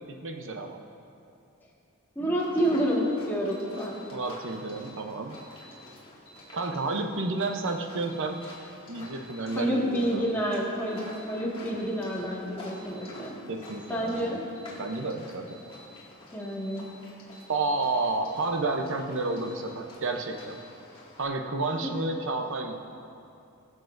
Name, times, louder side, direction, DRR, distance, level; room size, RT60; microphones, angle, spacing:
voice 1, 0.1-0.8 4.1-5.4 6.5-8.4 8.9-10.3 13.5-14.4 14.8-15.6 17.5-20.6 21.2-22.8, right 3 dB, 65° right, 5 dB, 0.8 m, -31 dB
voice 2, 2.2-4.0 9.6-11.0 11.3-13.4 13.9-14.4 16.3-16.9 21.8-21.9, equal, 10° left, -5 dB, 1.8 m, -28 dB
sound 1, 2.4-21.2, left 1 dB, 25° left, 2.2 m, -49 dB
Alarm, 2.6-2.9 3.5-3.9 4.4-4.8 5.3-5.7 6.3-6.6 7.2-7.5 8.1-8.5 9.0-9.4 9.9-10.3 10.9-11.2 11.8-12.1 12.7-13.1 13.6-14.0 14.6-14.9 15.5-15.8 16.4-16.8 17.3-17.7 18.2-18.6 19.2-19.5 20.1-20.4, right 1 dB, 40° right, 2.2 m, -54 dB
21.0 x 7.4 x 2.6 m, 2.6 s
head